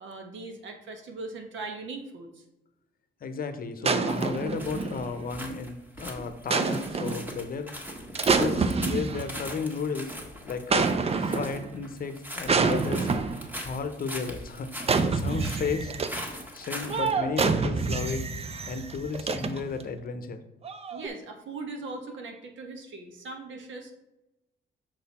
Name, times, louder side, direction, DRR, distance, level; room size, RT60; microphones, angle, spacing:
voice 1, 0.0-2.4 20.9-23.9, right 3 dB, 70° right, 4 dB, 1.3 m, -39 dB
voice 2, 3.2-7.7 8.2-10.1 10.5-13.1 13.6-15.9 16.3-18.3 18.6-20.5, left 5 dB, 45° left, 9 dB, 0.7 m, -34 dB
sound 1, 3.8-5.3 6.5-7.3 8.2-9.6 10.7-11.7 12.5-13.5 14.8-16.3 16.9-19.8 20.6-21.1, right 4 dB, 30° right, 0.5 m, -27 dB
sound 2, 4.1-17.1, equal, 10° right, 1.3 m, -41 dB
6.3 x 4.1 x 4.2 m, 0.93 s
cardioid pair, 90°, 20 cm